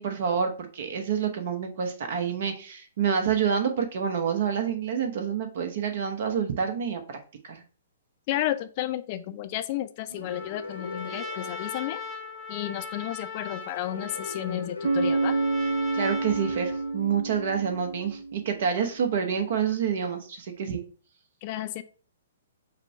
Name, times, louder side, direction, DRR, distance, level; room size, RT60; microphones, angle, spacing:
voice 1, 0.0-7.2 7.4-7.6 15.9-20.8, right 7 dB, 55° right, 6 dB, 0.9 m, -28 dB
voice 2, 8.3-12.0 12.5-15.4 21.4-21.8, left 13 dB, 40° left, 11 dB, 0.4 m, -32 dB
sound 1, 10.1-12.9 13.6-16.4, left 3 dB, 90° left, 0.8 m, -42 dB
Trumpet, 10.2-17.0, left 4 dB, 5° right, 1.1 m, -39 dB
Bass guitar, 14.8-18.7, right 3 dB, 70° right, 0.6 m, -28 dB
5.1 x 2.2 x 4.5 m, 0.39 s
figure-of-eight pair, 120°, 0 cm